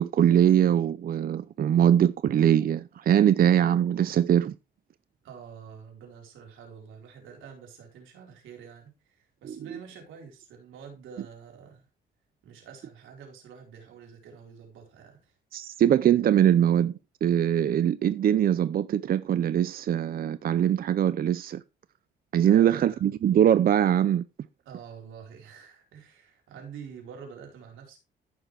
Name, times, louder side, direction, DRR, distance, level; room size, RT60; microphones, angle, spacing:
voice 1, 0.0-4.5 9.4-9.8 15.5-21.6 22.3-24.2, right 10 dB, 50° right, 0.5 m, -22 dB
voice 2, 5.2-11.9 12.4-15.4 15.7-15.8 22.4-23.0 24.7-28.0, right 7 dB, 85° right, 4.4 m, -47 dB
15.0 x 6.3 x 3.3 m
cardioid pair, 90°, 20 cm